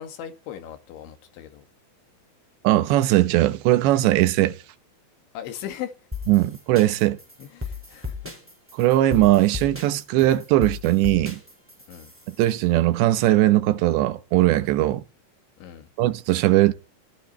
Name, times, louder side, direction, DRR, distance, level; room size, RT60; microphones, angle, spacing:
voice 1, 0.0-1.6 5.3-5.9 7.4-8.4 11.9-12.1 15.6-15.9, left 10 dB, 85° left, 4.4 m, -38 dB
voice 2, 2.6-4.6 6.3-7.2 8.8-11.4 12.4-15.0 16.0-16.7, right 15 dB, 80° right, 3.2 m, -19 dB
sound 1, 6.1-12.5, left 4 dB, 5° right, 4.5 m, -36 dB
22.0 x 14.0 x 4.3 m
omnidirectional pair, 5.2 m